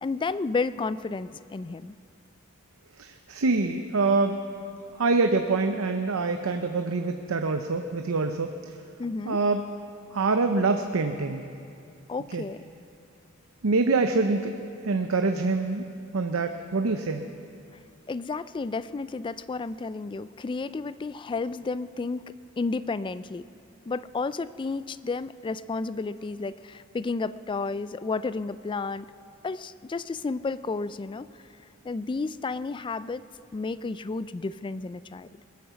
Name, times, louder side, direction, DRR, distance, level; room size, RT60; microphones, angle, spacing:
voice 1, 0.0-2.0 9.0-9.4 12.1-12.6 18.1-23.4 23.9-29.1 29.4-31.4 31.8-33.2 33.5-35.4, left 3 dB, 25° left, 16 dB, 0.3 m, -32 dB
voice 2, 3.0-4.4 5.0-8.7 9.3-9.6 10.1-11.4 12.3-12.4 13.6-14.5 14.8-15.8 16.1-17.3, right 3 dB, 85° right, 6 dB, 0.7 m, -25 dB
21.5 x 9.4 x 7.0 m, 2.5 s
head